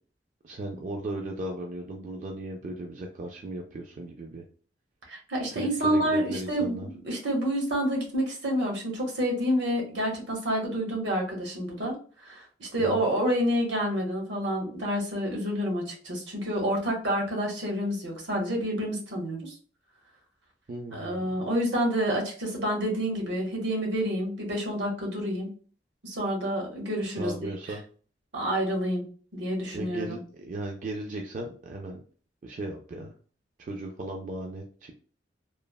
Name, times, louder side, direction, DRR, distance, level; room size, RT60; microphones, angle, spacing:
voice 1, 0.4-4.4 5.5-6.9 12.8-13.0 20.7-21.4 27.0-27.8 29.7-32.0 32.4-33.1 33.6-34.9, right 2 dB, 45° right, 2 dB, 0.3 m, -36 dB
voice 2, 5.1-11.9 12.2-19.5 20.9-25.5 26.0-27.3 28.3-29.1 29.3-30.2, equal, 75° right, 0 dB, 0.9 m, -28 dB
3.1 x 2.0 x 2.2 m, 0.41 s
head